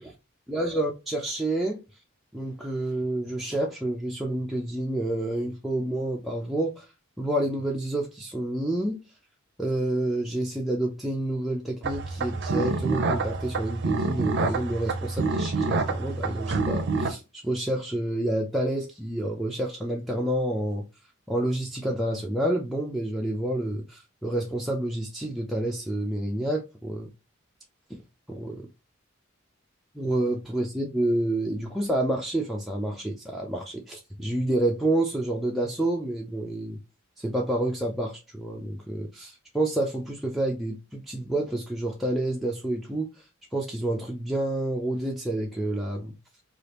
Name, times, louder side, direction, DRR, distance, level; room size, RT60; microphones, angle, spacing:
voice 1, 0.5-1.8 2.3-6.9 7.2-9.0 9.6-20.8 21.3-27.1 27.9-28.0 28.3-28.7 29.9-36.8 37.2-43.3 43.5-46.1, right 1 dB, ahead, 0.4 m, -29 dB
sound 1, 11.8-17.1, right 3 dB, 55° right, 0.5 m, -27 dB
3.3 x 2.4 x 2.9 m
head